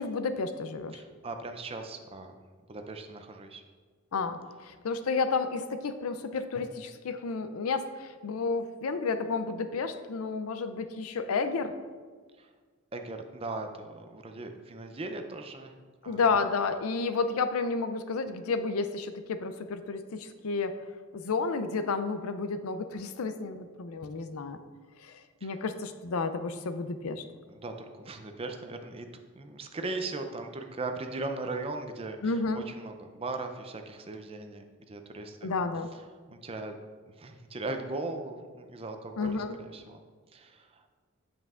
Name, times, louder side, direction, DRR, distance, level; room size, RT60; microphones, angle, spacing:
voice 1, 0.0-0.9 4.1-11.7 16.1-20.8 21.1-24.6 25.0-25.1 25.4-27.2 32.2-32.6 35.4-35.9 39.2-39.5, left 4 dB, 85° left, 10 dB, 0.5 m, -31 dB
voice 2, 0.9-2.4 2.7-3.6 12.4-12.5 12.9-15.7 16.0-16.2 25.4-25.5 27.5-29.1 29.4-35.5 36.3-36.8 37.2-40.0 40.3-40.9, right 2 dB, 25° right, 5 dB, 0.5 m, -38 dB
8.0 x 7.3 x 2.4 m, 1.5 s
head